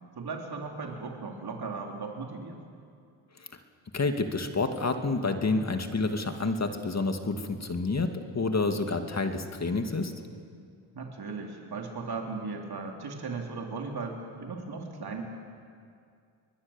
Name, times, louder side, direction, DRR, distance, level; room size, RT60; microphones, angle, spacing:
voice 1, 0.2-2.6 10.9-15.2, right 4 dB, 50° right, 1 dB, 3.6 m, -37 dB
voice 2, 3.9-10.1, left 3 dB, 30° left, 6 dB, 2.4 m, -29 dB
24.0 x 20.5 x 7.3 m, 2.3 s
supercardioid pair, 60°, 49 cm